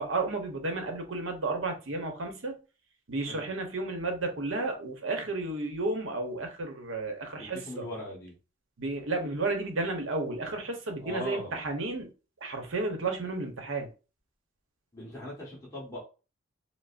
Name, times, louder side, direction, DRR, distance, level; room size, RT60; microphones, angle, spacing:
voice 1, 0.0-2.5 3.1-7.9 8.8-12.1 12.4-13.9, right 3 dB, 90° right, 0.9 m, -32 dB
voice 2, 7.4-8.3 11.0-11.6 14.9-16.0, left 1 dB, 15° left, 1.4 m, -40 dB
5.1 x 2.0 x 2.5 m
head